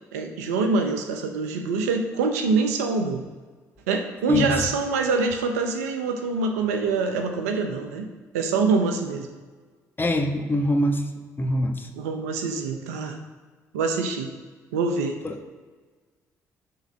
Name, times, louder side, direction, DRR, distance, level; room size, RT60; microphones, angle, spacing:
voice 1, 0.1-3.2 3.9-8.1 8.3-9.3 11.9-13.2 13.7-14.3 14.7-15.2, right 4 dB, 85° right, 5 dB, 0.8 m, -25 dB
voice 2, 4.3-4.6 10.0-11.0 11.4-11.9 15.2-15.4, left 1 dB, 25° left, 4 dB, 1.4 m, -23 dB
10.5 x 3.9 x 6.4 m, 1.4 s
hypercardioid pair, 50°, 8 cm